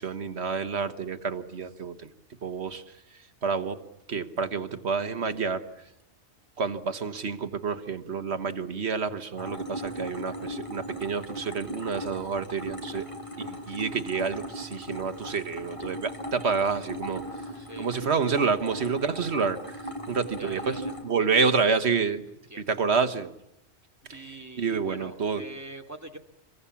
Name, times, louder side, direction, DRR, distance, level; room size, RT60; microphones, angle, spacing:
voice 1, 0.0-2.1 2.4-2.8 3.4-3.8 4.1-5.6 6.6-13.0 13.4-17.2 17.8-19.8 20.1-22.2 22.6-23.3 24.1-24.2 24.6-25.4, right 5 dB, 65° right, 9 dB, 1.6 m, -28 dB
sound 1, 9.4-21.0, equal, 25° left, 5.1 m, -38 dB
voice 2, 17.5-17.9 18.6-18.9 20.4-20.9 21.4-21.8 22.5-22.7 24.1-26.2, right 1 dB, 15° right, 3 dB, 2.5 m, -44 dB
28.0 x 23.0 x 7.2 m, 0.84 s
omnidirectional pair, 1.2 m